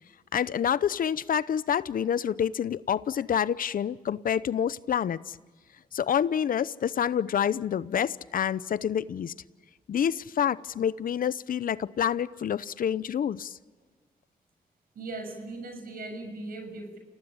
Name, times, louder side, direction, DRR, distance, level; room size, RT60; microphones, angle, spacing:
voice 1, 0.3-5.4 5.9-9.3 9.9-13.5, left 8 dB, 70° left, 17 dB, 0.8 m, -27 dB
voice 2, 14.9-17.0, right 2 dB, 75° right, 6 dB, 6.6 m, -38 dB
29.0 x 18.5 x 8.7 m, 1.4 s
cardioid pair, 60°, 15 cm